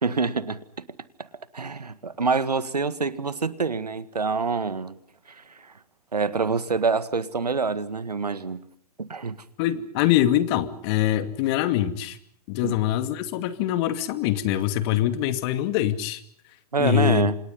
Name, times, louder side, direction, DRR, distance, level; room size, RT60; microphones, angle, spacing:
voice 1, 0.0-0.6 1.5-5.0 6.1-8.6 9.0-9.4 12.6-12.8 16.7-17.4, right 4 dB, 85° right, 1.8 m, -26 dB
voice 2, 9.6-12.2 12.5-16.2 16.8-17.3, left 12 dB, 40° left, 2.4 m, -24 dB
29.5 x 27.0 x 5.5 m
figure-of-eight pair, 115°, 20 cm